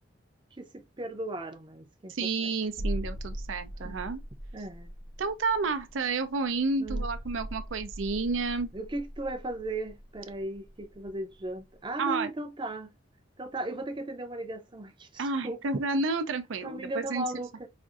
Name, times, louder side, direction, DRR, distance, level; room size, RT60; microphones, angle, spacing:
voice 1, 0.5-2.5 2.8-2.9 3.8-4.0 4.5-4.9 6.8-7.1 8.7-12.9 13.4-15.6 16.6-17.7, right 2 dB, 25° right, 0.6 m, -37 dB
voice 2, 2.1-4.2 5.2-8.7 12.0-12.3 15.2-17.2, right 3 dB, 85° right, 0.5 m, -30 dB
sound 1, 2.7-11.1 11.4-11.6, equal, 30° left, 0.8 m, -39 dB
5.0 x 2.5 x 2.4 m
head